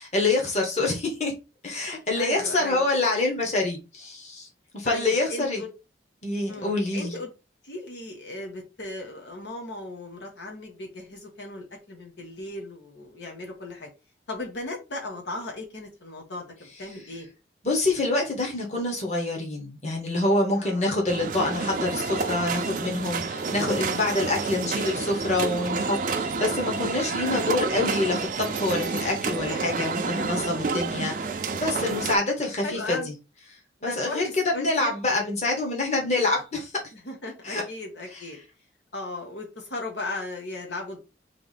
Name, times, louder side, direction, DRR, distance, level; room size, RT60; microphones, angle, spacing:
voice 1, 0.0-1.3 1.6-4.5 4.7-5.6 6.2-7.1 17.6-33.0 33.8-36.7 37.4-37.6 38.1-38.2, left 2 dB, 40° left, 1.3 m, -26 dB
voice 2, 2.2-2.9 4.8-5.7 6.5-7.3 7.6-13.9 14.3-17.3 20.6-20.9 32.6-33.1 33.8-34.9 37.0-38.4 38.9-41.0, left 2 dB, 75° left, 1.2 m, -36 dB
sound 1, 21.1-32.2, right 4 dB, 45° right, 0.5 m, -29 dB
3.5 x 3.1 x 4.1 m
head